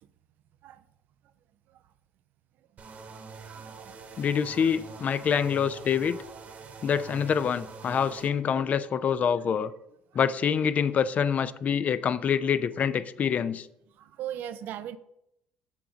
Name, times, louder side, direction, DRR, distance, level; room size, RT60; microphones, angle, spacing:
sound 1, 2.8-8.3, right 5 dB, 50° right, 1.3 m, -45 dB
voice 1, 3.5-4.0 6.6-6.7 14.0-15.0, right 11 dB, 65° right, 13 dB, 0.5 m, -39 dB
voice 2, 4.2-6.2 6.8-9.7 10.1-13.7, left 7 dB, 45° left, 14 dB, 0.4 m, -26 dB
7.3 x 3.8 x 5.9 m, 0.80 s
supercardioid pair, 70°, 3 cm